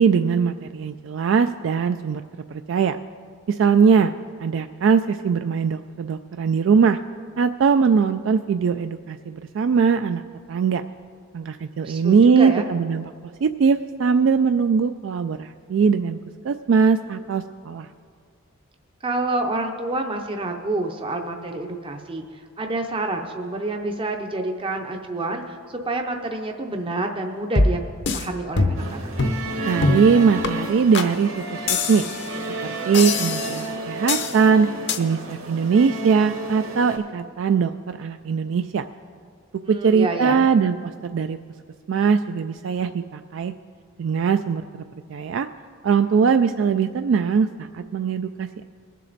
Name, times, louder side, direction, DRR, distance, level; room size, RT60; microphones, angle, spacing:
voice 1, 0.0-2.2 2.5-3.0 3.5-4.1 4.4-7.0 7.4-10.2 10.5-10.8 11.3-13.1 13.4-16.2 16.4-17.9 29.7-32.1 32.8-34.7 35.0-38.9 39.7-41.4 41.9-43.5 44.0-44.8 45.1-45.5 45.8-47.5 47.7-48.6, right 6 dB, 60° right, 9 dB, 0.3 m, -20 dB
voice 2, 11.8-12.7 19.0-27.8 28.1-29.1 39.6-40.5, right 2 dB, 25° right, 3 dB, 0.6 m, -28 dB
sound 1, 27.6-28.3 28.6-28.9 29.2-29.4 29.8-30.1 30.4-30.5 30.9-31.1 31.7-32.3 32.9-33.7 34.1-34.4 34.9-35.0, left 3 dB, 55° left, 0.8 m, -23 dB
sound 2, 28.8-37.0, right 1 dB, 80° right, 2.3 m, -32 dB
21.5 x 7.5 x 4.0 m, 2.1 s
head